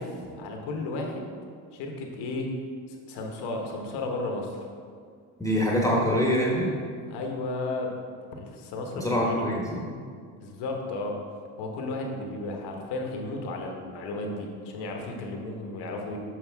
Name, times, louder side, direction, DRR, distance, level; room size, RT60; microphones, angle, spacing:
voice 1, 0.0-1.3 1.7-2.5 2.9-4.6 7.1-7.9 8.3-9.5 10.4-11.2 11.6-16.2, left 2 dB, 75° left, 1 dB, 1.3 m, -34 dB
voice 2, 5.4-6.7 9.0-9.8, equal, 10° left, -3 dB, 1.2 m, -24 dB
7.6 x 5.3 x 3.5 m, 2.1 s
supercardioid pair, 90°, 41 cm